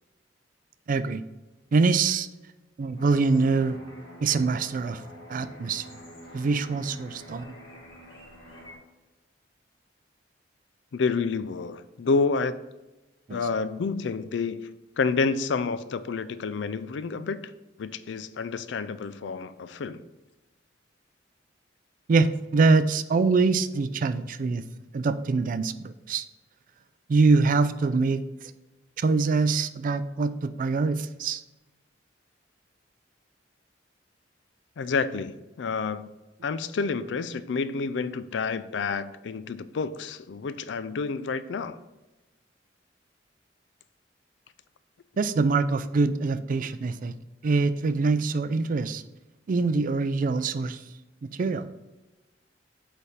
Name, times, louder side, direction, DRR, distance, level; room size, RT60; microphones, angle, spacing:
voice 1, 0.9-1.2 1.7-2.3 2.8-3.8 4.2-5.0 5.3-5.8 6.3-7.4 13.3-13.4 22.1-24.6 24.9-26.3 27.1-28.2 29.0-31.4 45.2-47.1 47.4-49.0 49.5-50.8 51.2-51.7, right 4 dB, 45° right, 13 dB, 0.4 m, -24 dB
sound 1, 3.0-8.7, equal, 30° left, 1.9 m, -46 dB
voice 2, 10.9-12.6 13.3-14.7 15.0-17.4 17.8-20.0 34.8-36.1 36.4-41.8, left 4 dB, 70° left, 13 dB, 0.4 m, -29 dB
8.3 x 3.4 x 4.2 m, 1.1 s
head